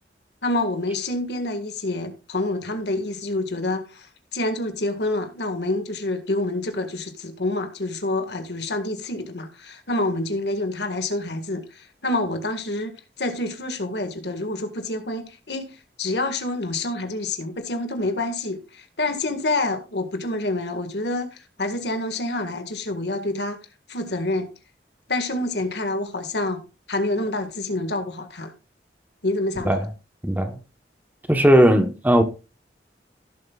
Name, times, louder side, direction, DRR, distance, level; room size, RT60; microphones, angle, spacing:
voice 1, 0.4-23.6 23.9-24.5 25.1-26.6 26.9-28.5 29.2-29.8, left 2 dB, 70° left, 1.8 m, -27 dB
voice 2, 30.2-30.6 31.3-32.2, equal, 10° right, 1.1 m, -17 dB
16.5 x 7.6 x 2.4 m
head